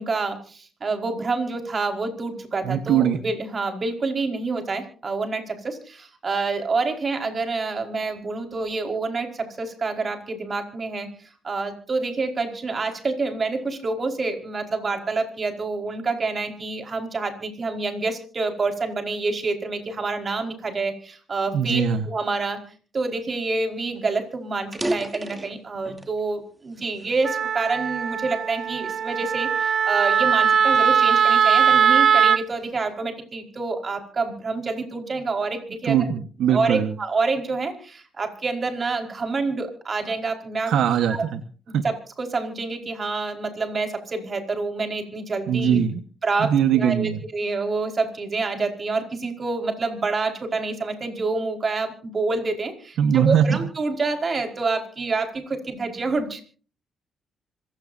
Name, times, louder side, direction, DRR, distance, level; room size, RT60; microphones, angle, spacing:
voice 1, 0.0-11.1 11.4-21.8 22.1-22.6 22.9-36.0 36.5-40.7 41.1-41.2 41.8-45.8 46.2-56.4, right 3 dB, 40° right, 4 dB, 4.9 m, -27 dB
voice 2, 2.6-3.2 21.5-22.1 35.8-37.0 40.7-41.4 41.7-41.8 45.5-46.0 46.4-47.2 53.0-53.6, right 8 dB, 75° right, 9 dB, 1.3 m, -21 dB
sound 1, 23.9-24.1 24.6-26.2 26.7-28.0 28.6-28.9 29.5-31.5, right 1 dB, 15° right, 2.7 m, -33 dB
Wind instrument woodwind instrument, 27.2-32.4, right 7 dB, 55° right, 0.9 m, -20 dB
26.0 x 17.0 x 2.7 m, 0.40 s
cardioid pair, 90°, 0 cm